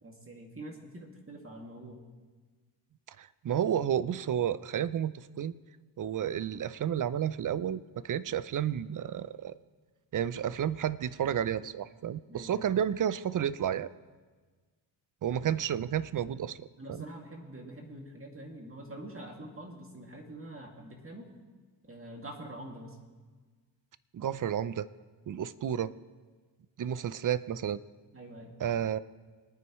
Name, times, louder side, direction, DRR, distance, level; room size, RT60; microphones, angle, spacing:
voice 1, 0.0-2.0 12.3-12.6 16.8-21.2 21.9-23.0 28.1-28.5, right 1 dB, 30° right, 1 dB, 2.4 m, -45 dB
voice 2, 3.2-5.5 6.0-9.5 10.1-13.9 15.2-17.0 24.1-24.9 25.3-25.9 26.8-27.8 28.6-29.0, right 9 dB, 45° right, 17 dB, 0.6 m, -31 dB
23.5 x 9.4 x 3.1 m, 1.4 s
cardioid pair, 70°, 46 cm